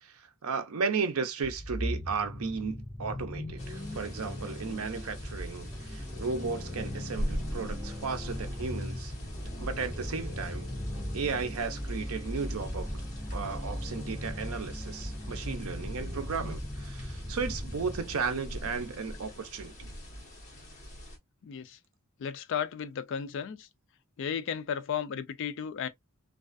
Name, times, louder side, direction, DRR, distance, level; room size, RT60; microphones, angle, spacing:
voice 1, 0.0-9.1 9.6-10.7 11.1-13.0 13.3-19.9, right 5 dB, 75° right, 0.5 m, -35 dB
sound 1, 1.4-18.3, equal, 10° right, 1.3 m, -38 dB
sound 2, 3.6-21.2, equal, 35° left, 1.1 m, -44 dB
voice 2, 21.4-21.8 22.2-23.7 24.2-25.9, left 7 dB, 60° left, 0.3 m, -34 dB
2.4 x 2.3 x 2.3 m
head